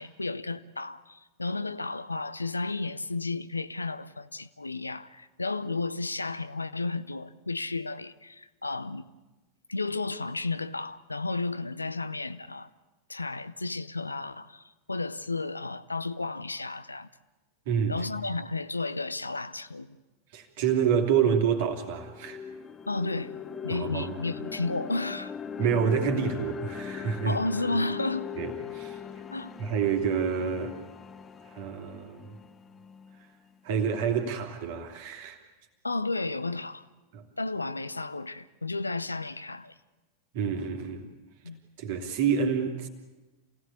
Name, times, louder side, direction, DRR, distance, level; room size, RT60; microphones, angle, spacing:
voice 1, 0.0-9.1 9.7-12.7 13.1-17.1 17.9-20.0 22.9-23.4 23.6-25.3 27.3-28.3 29.3-29.5 35.8-36.9 37.4-39.7 41.4-41.6, left 3 dB, 80° left, 0.7 m, -33 dB
voice 2, 17.7-18.0 20.3-22.4 23.7-24.2 25.6-27.4 28.4-29.0 29.6-30.8 31.4-32.4 33.6-35.4 37.1-37.2 40.3-41.1 41.8-42.9, right 7 dB, 50° right, 2.9 m, -28 dB
sound 1, 20.9-21.0 21.4-33.5, left 7 dB, 20° left, 1.0 m, -40 dB
27.5 x 17.5 x 8.6 m
figure-of-eight pair, 90°, 0 cm